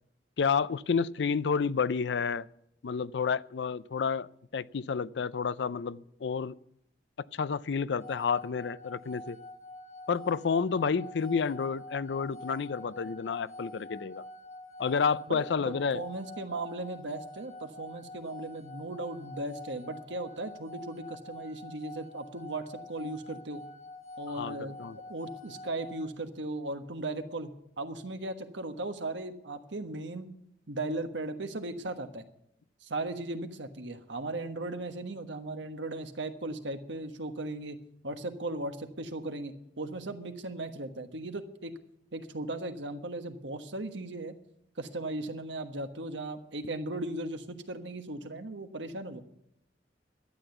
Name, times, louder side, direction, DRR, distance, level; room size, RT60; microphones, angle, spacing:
voice 1, 0.4-2.5 2.8-6.5 7.3-9.4 10.1-14.2 14.8-16.0 24.3-25.0, left 5 dB, 75° left, 18 dB, 0.4 m, -30 dB
sound 1, 8.0-26.1, left 2 dB, 35° left, 1.7 m, -47 dB
voice 2, 15.3-23.6 24.2-24.8 25.1-27.5 27.8-30.3 30.7-32.2 32.8-37.8 38.0-41.7 42.1-44.3 44.8-49.2, right 2 dB, 85° right, 7 dB, 1.3 m, -37 dB
12.5 x 9.0 x 7.9 m, 0.73 s
head